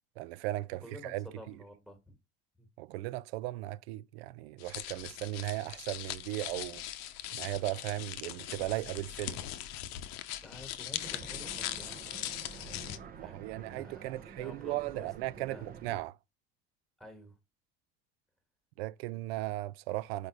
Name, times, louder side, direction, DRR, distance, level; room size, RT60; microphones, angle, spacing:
voice 1, 0.2-1.5 2.8-6.8 7.3-9.4 13.2-16.2 18.8-20.3, right 17 dB, 85° right, 0.5 m, -37 dB
voice 2, 0.8-2.1 2.6-2.7 10.4-12.1 12.5-15.7 17.0-17.4, equal, ahead, 1.5 m, -51 dB
sound 1, 4.6-13.0, left 12 dB, 60° left, 0.7 m, -40 dB
sound 2, 11.0-16.0, right 6 dB, 30° right, 0.7 m, -49 dB
5.0 x 4.0 x 4.8 m
supercardioid pair, 125°, 30 cm